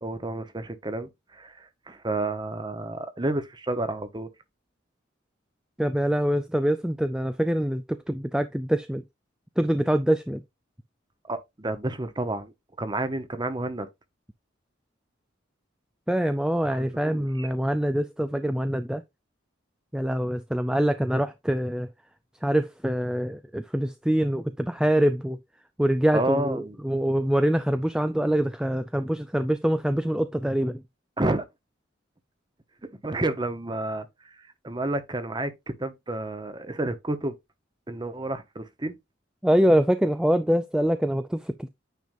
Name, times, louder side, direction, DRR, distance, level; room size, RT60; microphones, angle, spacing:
voice 1, 0.0-4.3 11.3-12.5 12.8-13.9 16.6-17.5 26.1-26.8 31.2-31.4 33.0-34.3 34.6-35.5 35.8-37.3 37.9-39.0, right 2 dB, 20° right, 0.9 m, -30 dB
voice 2, 5.8-9.0 9.6-10.4 16.1-19.0 19.9-21.9 22.4-25.4 25.8-30.8 39.4-41.7, right 1 dB, 5° right, 0.3 m, -24 dB
9.3 x 5.2 x 2.6 m
head